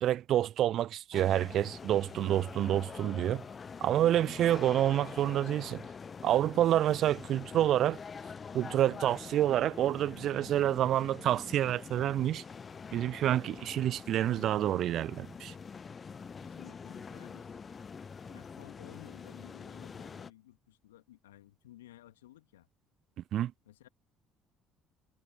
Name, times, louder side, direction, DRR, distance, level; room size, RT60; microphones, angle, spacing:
voice 1, 0.0-3.4 3.8-5.8 6.2-8.0 8.5-12.4 12.9-15.5 23.3-23.5, right 12 dB, 55° right, 0.4 m, -28 dB
sound 1, 1.1-20.3, left 5 dB, 35° left, 1.0 m, -45 dB
voice 2, 16.4-17.5 18.3-22.7 23.7-23.9, left 14 dB, 75° left, 2.5 m, -55 dB
figure-of-eight pair, 55°, 0 cm